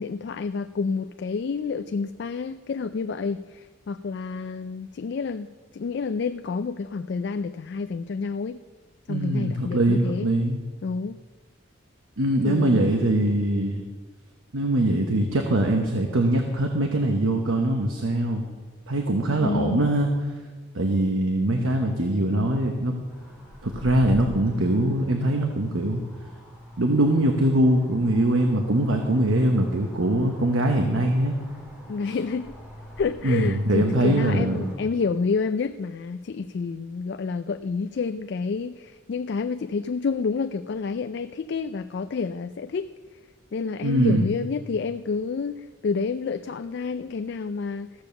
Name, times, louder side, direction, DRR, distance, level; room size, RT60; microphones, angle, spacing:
voice 1, 0.0-5.5 5.7-8.6 9.1-10.3 10.8-11.2 12.4-12.9 13.3-13.4 19.4-19.8 31.9-32.6 33.0-42.9 43.5-47.9, left 5 dB, 55° left, 10 dB, 0.3 m, -29 dB
voice 2, 9.1-10.6 12.2-13.8 14.5-18.5 18.9-20.1 20.7-23.0 23.6-26.0 26.8-31.3 32.1-32.2 33.2-34.7 43.8-44.3, right 1 dB, 85° right, 3 dB, 1.1 m, -22 dB
sound 1, 23.1-34.8, equal, 5° right, 2.7 m, -45 dB
14.5 x 7.1 x 6.8 m, 1.4 s
head